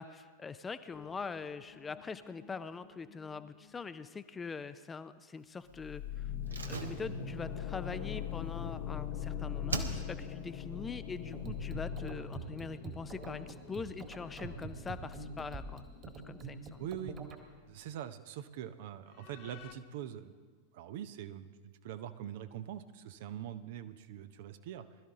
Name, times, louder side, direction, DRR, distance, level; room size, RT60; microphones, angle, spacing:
voice 1, 0.0-6.3 6.7-15.9 16.2-16.9, left 5 dB, 15° left, 12 dB, 0.5 m, -43 dB
sound 1, 0.9-3.7 5.7-17.1 17.4-17.5 19.2-19.7, left 8 dB, 40° left, 0.9 m, -42 dB
Slam, 6.5-9.2 9.7-10.4 10.7-10.8, right 3 dB, 75° right, 1.1 m, -41 dB
sound 2, 11.3-17.4, right 5 dB, 30° right, 1.8 m, -45 dB
voice 2, 16.8-17.2 17.7-20.3 20.7-24.9, right 10 dB, 50° right, 11 dB, 0.7 m, -43 dB
21.0 x 12.5 x 3.7 m, 1.5 s
figure-of-eight pair, 90°, 0 cm